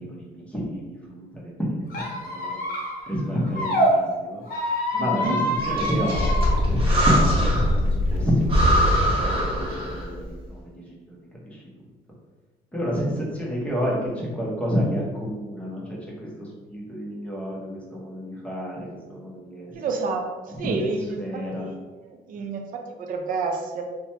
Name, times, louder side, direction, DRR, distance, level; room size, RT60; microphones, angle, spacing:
voice 1, 0.0-2.6 3.1-4.4 5.0-6.3 6.7-11.0 11.4-11.6 12.7-19.9 20.5-21.7 22.3-22.5, equal, 5° left, -5 dB, 0.9 m, -29 dB
Squeak, 1.9-3.9 4.4-6.6, equal, 55° left, 0.7 m, -27 dB
voice 2, 4.9-5.4 19.7-20.2 20.6-23.8, right 4 dB, 55° right, 3 dB, 0.5 m, -29 dB
Breathing, 5.6-7.8 8.1-8.2 8.5-10.2, equal, 30° right, 0.9 m, -23 dB
sound 1, 6.1-9.7, left 1 dB, 35° left, 0.4 m, -24 dB
3.0 x 2.2 x 2.8 m, 1.3 s
cardioid pair, 110°, 17 cm